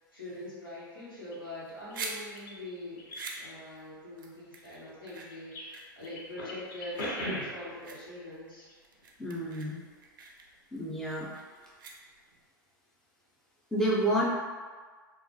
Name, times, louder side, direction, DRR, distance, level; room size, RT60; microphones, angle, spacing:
voice 1, 0.1-3.1 3.4-8.6, left 1 dB, 90° left, -9 dB, 1.0 m, -43 dB
sound 1, 1.3-1.5 1.9-2.6 3.0-3.5 4.6-5.7 6.0-7.8 8.5-8.7 9.0-9.1, equal, 60° left, 0.7 m, -39 dB
sound 2, 1.5-12.4, right 4 dB, 70° right, 0.4 m, -46 dB
voice 2, 9.2-9.8 10.7-11.3 13.7-14.3, right 1 dB, 5° left, -7 dB, 0.5 m, -29 dB
2.3 x 2.1 x 2.6 m, 1.5 s
figure-of-eight pair, 85°, 11 cm